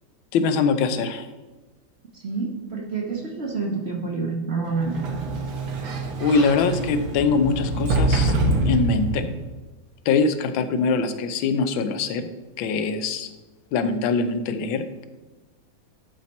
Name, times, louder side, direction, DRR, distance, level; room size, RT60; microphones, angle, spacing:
voice 1, 0.3-1.3 6.2-8.3 8.6-9.3 10.1-12.3 12.6-13.3 13.7-15.0, left 4 dB, 85° left, 9 dB, 1.5 m, -23 dB
voice 2, 2.1-5.0, right 4 dB, 45° right, 0 dB, 1.0 m, -28 dB
Sliding door, 4.7-9.4, right 2 dB, 85° right, 1.8 m, -25 dB
11.5 x 4.2 x 4.2 m, 1.2 s
omnidirectional pair, 2.1 m